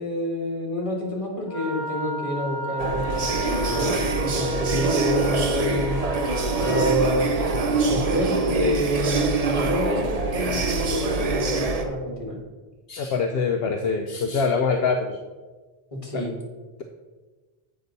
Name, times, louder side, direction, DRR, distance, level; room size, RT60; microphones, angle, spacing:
voice 1, 0.0-6.0 6.6-12.4 15.9-16.4, left 1 dB, 30° left, -1 dB, 1.8 m, -28 dB
Wind instrument woodwind instrument, 1.5-7.0, right 1 dB, 50° left, 1.7 m, -33 dB
sound 1, 2.8-11.9, right 3 dB, 40° right, 0.7 m, -24 dB
voice 2, 6.7-7.0 12.9-15.2 16.1-16.2, left 5 dB, 70° left, 4 dB, 0.8 m, -24 dB
7.9 x 5.9 x 4.0 m, 1.3 s
omnidirectional pair, 1.1 m